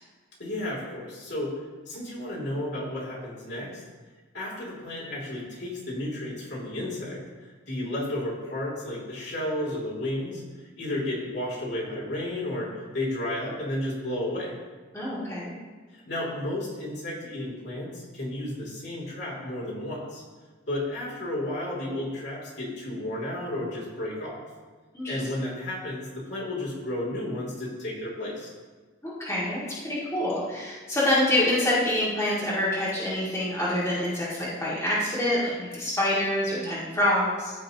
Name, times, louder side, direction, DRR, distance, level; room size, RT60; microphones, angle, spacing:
voice 1, 0.4-1.5 1.9-3.8 4.3-10.4 10.8-14.6 15.9-20.2 20.7-24.4 25.1-28.5, left 1 dB, 60° left, -5 dB, 2.8 m, -32 dB
voice 2, 14.9-15.5 24.9-25.1 29.0-37.5, left 1 dB, 15° left, -9 dB, 2.0 m, -26 dB
14.0 x 5.5 x 2.9 m, 1.4 s
head